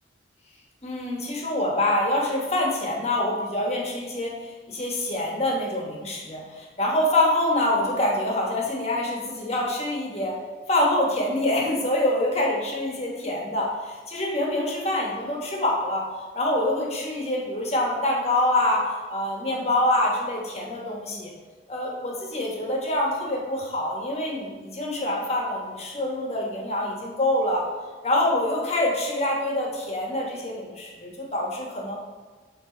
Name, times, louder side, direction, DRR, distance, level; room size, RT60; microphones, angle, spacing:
voice 1, 0.8-4.3 4.7-10.3 10.7-16.0 16.3-21.3 21.7-27.7 28.0-32.0, left 1 dB, 35° left, -2 dB, 1.3 m, -25 dB
8.4 x 3.4 x 3.9 m, 1.3 s
head